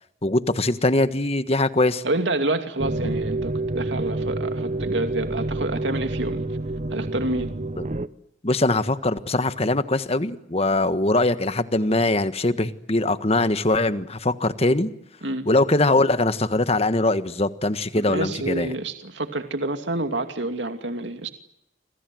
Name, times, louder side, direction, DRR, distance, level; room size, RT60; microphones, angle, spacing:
voice 1, 0.2-2.0 3.0-3.1 7.8-7.9 8.4-14.9 15.4-18.7, left 2 dB, 35° left, 11 dB, 1.5 m, -22 dB
voice 2, 2.0-6.5 6.9-7.5 15.2-15.5 17.9-21.3, right 2 dB, 70° right, 7 dB, 2.6 m, -28 dB
sound 1, 2.8-8.1, right 2 dB, 40° right, 1.0 m, -28 dB
29.0 x 26.5 x 7.8 m, 0.80 s
head